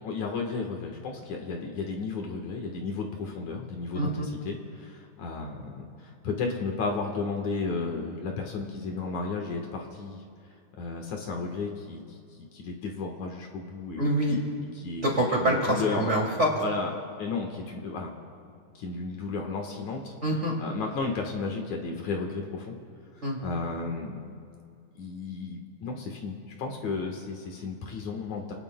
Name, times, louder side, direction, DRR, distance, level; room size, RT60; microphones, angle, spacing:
voice 1, 0.0-10.2 10.8-12.2 12.5-14.4 14.7-15.1 15.4-16.1 16.6-16.9 17.2-18.2 18.8-20.1 20.6-22.8 23.4-24.3 25.0-28.5, left 4 dB, 65° left, 1 dB, 2.6 m, -33 dB
voice 2, 3.9-4.3 14.0-14.4 15.0-16.5 20.2-20.5 23.2-23.4, right 1 dB, 25° right, -3 dB, 2.2 m, -25 dB
29.0 x 19.0 x 2.2 m, 2.4 s
omnidirectional pair, 3.7 m